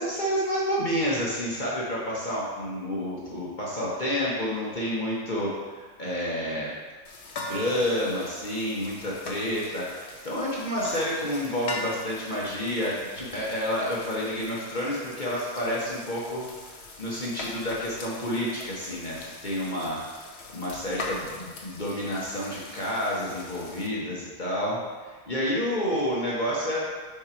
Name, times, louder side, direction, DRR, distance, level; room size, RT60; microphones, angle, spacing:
voice 1, 0.0-6.7 7.5-16.4 17.0-20.2 20.5-26.8, equal, 35° left, -6 dB, 0.8 m, -29 dB
sound 1, 7.0-23.9, left 2 dB, 85° left, 0.5 m, -41 dB
5.3 x 4.9 x 4.4 m, 1.4 s
omnidirectional pair, 2.3 m